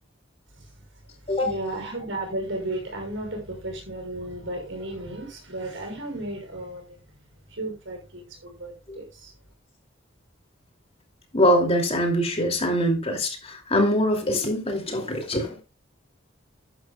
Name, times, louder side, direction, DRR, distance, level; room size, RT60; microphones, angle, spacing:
voice 1, 1.1-7.0 7.4-9.3, right 1 dB, 70° right, 2 dB, 6.0 m, -34 dB
voice 2, 11.3-15.6, equal, 30° left, 3 dB, 2.8 m, -23 dB
12.0 x 11.0 x 2.3 m, 0.27 s
head